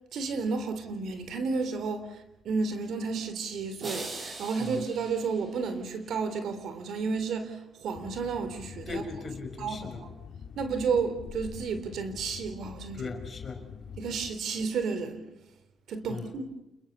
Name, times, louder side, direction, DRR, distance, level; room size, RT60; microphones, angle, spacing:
voice 1, 0.1-2.1 2.4-9.0 9.6-10.1 10.6-13.1 14.0-15.3 15.9-16.4, right 5 dB, 70° right, 3.6 m, -32 dB
sound 1, 3.8-6.1, right 3 dB, 40° right, 6.9 m, -42 dB
sound 2, 7.9-14.3, left 6 dB, 55° left, 3.0 m, -45 dB
voice 2, 8.9-10.0 13.0-13.6 16.1-16.3, left 4 dB, 40° left, 5.5 m, -38 dB
28.5 x 22.0 x 6.8 m
cardioid pair, 90°, 0 cm